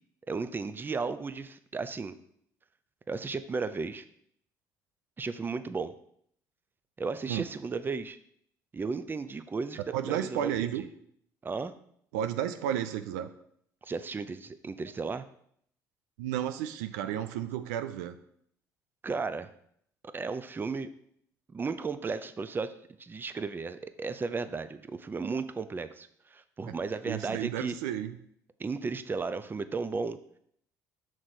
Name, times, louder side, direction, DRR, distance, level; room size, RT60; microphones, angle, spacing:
voice 1, 0.3-2.2 3.1-4.0 5.2-6.0 7.0-8.2 8.7-10.9 11.4-11.7 13.8-15.3 19.0-19.5 20.1-20.9 21.5-22.7 23.0-27.7 28.6-30.2, right 4 dB, 25° right, 12 dB, 0.5 m, -34 dB
voice 2, 9.9-10.8 12.1-13.3 16.2-18.2 26.7-26.8 27.1-28.2, right 10 dB, 80° right, 11 dB, 0.4 m, -32 dB
6.1 x 4.5 x 4.1 m, 0.67 s
hypercardioid pair, 60°, 9 cm